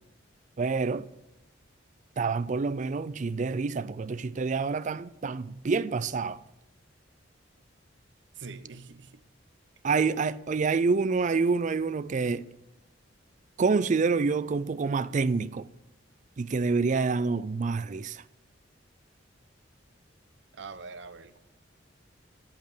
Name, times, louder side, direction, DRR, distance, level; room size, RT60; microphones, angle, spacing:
voice 1, 0.6-1.1 2.2-6.4 9.8-12.5 13.6-15.7 16.4-18.2, right 4 dB, 40° right, 0.4 m, -27 dB
voice 2, 8.3-9.2 20.5-21.4, right 4 dB, 65° right, 0.7 m, -44 dB
8.9 x 8.0 x 6.6 m
head